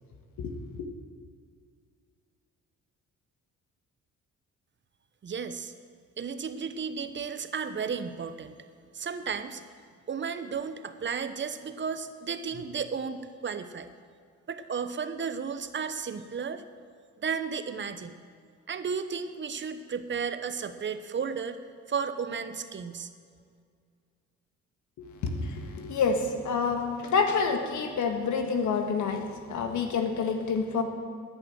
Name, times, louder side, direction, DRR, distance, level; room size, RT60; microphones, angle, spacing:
voice 1, 5.2-5.7 6.2-8.6 8.9-9.6 10.1-13.9 14.5-16.6 17.2-18.1 18.7-21.6 21.9-23.1, right 6 dB, 40° right, 11 dB, 0.9 m, -33 dB
voice 2, 25.0-29.2 29.5-30.8, left 5 dB, 75° left, 5 dB, 1.7 m, -28 dB
10.5 x 9.0 x 7.8 m, 2.1 s
cardioid pair, 90°, 30 cm